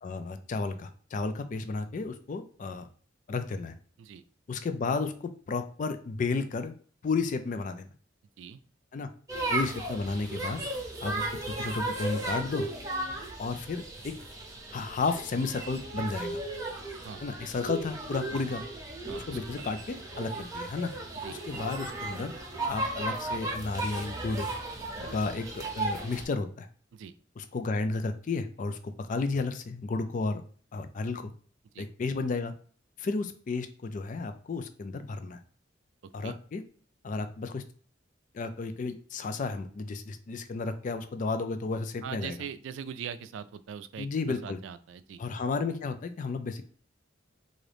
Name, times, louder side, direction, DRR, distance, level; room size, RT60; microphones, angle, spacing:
voice 1, 0.0-2.9 3.3-3.7 4.5-6.7 7.0-7.9 8.9-9.1 9.5-10.6 11.0-12.7 13.4-14.2 14.7-16.4 17.2-18.6 19.1-20.9 21.3-22.3 22.7-24.5 25.1-26.7 27.4-30.4 30.7-31.3 31.8-32.5 33.0-35.4 36.1-36.6 37.0-37.6 38.3-42.3 44.0-44.6 45.2-46.6, left 3 dB, 40° left, 10 dB, 0.3 m, -32 dB
sound 1, 9.3-26.2, right 2 dB, 15° right, 0.8 m, -36 dB
voice 2, 17.0-17.4 17.7-17.8 18.3-18.5 19.1-19.6 20.3-20.5 21.1-21.4 25.0-25.3 26.9-27.1 31.7-31.9 36.2-36.4 42.0-45.2, right 7 dB, 80° right, 13 dB, 0.3 m, -42 dB
3.7 x 2.6 x 3.3 m, 0.43 s
head